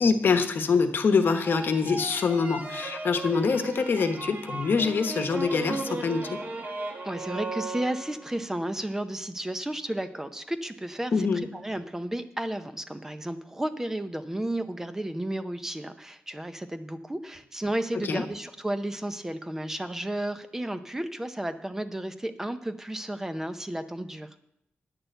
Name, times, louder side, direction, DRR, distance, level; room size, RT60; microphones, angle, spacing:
voice 1, 0.0-6.4 11.1-11.4 17.9-18.2, left 5 dB, 55° left, 8 dB, 1.1 m, -25 dB
sound 1, 1.2-8.4, right 2 dB, 40° right, 1.3 m, -36 dB
voice 2, 7.0-11.3 11.5-24.3, right 1 dB, 10° right, 9 dB, 0.6 m, -33 dB
10.5 x 6.7 x 7.8 m, 0.78 s
wide cardioid pair, 165°, 4 cm